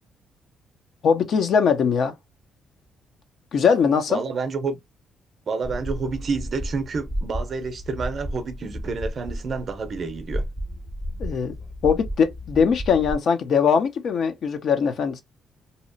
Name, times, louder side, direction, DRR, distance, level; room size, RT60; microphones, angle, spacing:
voice 1, 1.0-2.1 3.5-4.2 11.2-11.5 11.8-15.2, left 6 dB, 65° left, 0.6 m, -21 dB
voice 2, 4.1-4.8 5.5-10.5, right 4 dB, 50° right, 0.5 m, -29 dB
sound 1, 5.6-13.2, equal, 15° left, 0.4 m, -33 dB
2.7 x 2.0 x 2.5 m
cardioid pair, 90°, 0 cm